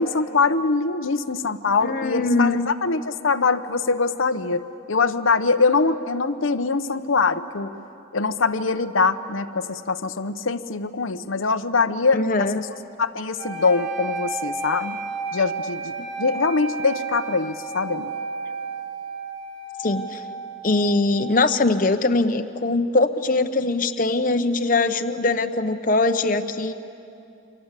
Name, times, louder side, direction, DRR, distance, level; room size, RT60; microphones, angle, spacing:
voice 1, 0.0-4.6 4.9-7.7 8.1-12.7 13.0-15.0 15.3-18.1, left 4 dB, 85° left, 9 dB, 1.0 m, -23 dB
voice 2, 1.8-2.7 12.1-12.6 19.8-20.2 20.6-26.7, left 3 dB, 40° left, 8 dB, 0.9 m, -22 dB
sound 1, 13.4-21.4, right 3 dB, 60° right, 7.2 m, -32 dB
28.5 x 25.0 x 8.3 m, 2.7 s
head